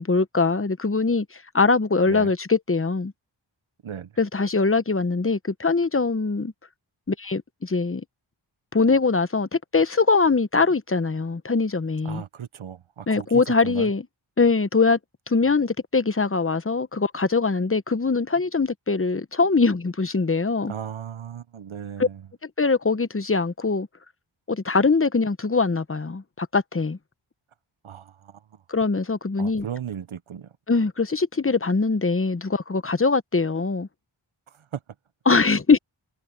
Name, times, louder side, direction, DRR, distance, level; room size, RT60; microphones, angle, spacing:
voice 1, 0.0-3.1 4.2-6.5 7.1-8.0 8.7-12.2 13.1-14.0 14.4-15.0 15.3-20.7 22.0-22.1 22.6-23.9 24.5-27.0 28.7-29.6 30.7-33.9 35.3-35.8, left 4 dB, 25° left, 1.1 m, -22 dB
voice 2, 12.0-13.9 20.7-22.3 27.8-28.4 29.4-30.5 34.5-34.8, right 8 dB, 70° right, 1.1 m, -36 dB
cardioid pair, 45°, 50 cm